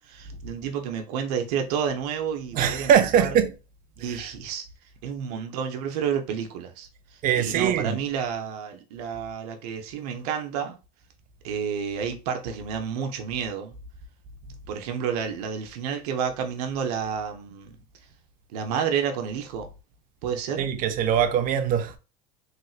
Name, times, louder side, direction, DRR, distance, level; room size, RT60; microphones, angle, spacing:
voice 1, 0.0-2.9 3.2-3.3 4.0-4.6 5.0-10.8 11.4-13.8 14.7-17.8 18.5-19.7 20.2-20.7, right 7 dB, 80° right, 0.8 m, -30 dB
voice 2, 2.5-3.5 4.0-4.2 7.2-8.0 20.6-22.0, right 9 dB, 45° right, 0.6 m, -22 dB
3.3 x 3.0 x 2.4 m
supercardioid pair, 120°, 19 cm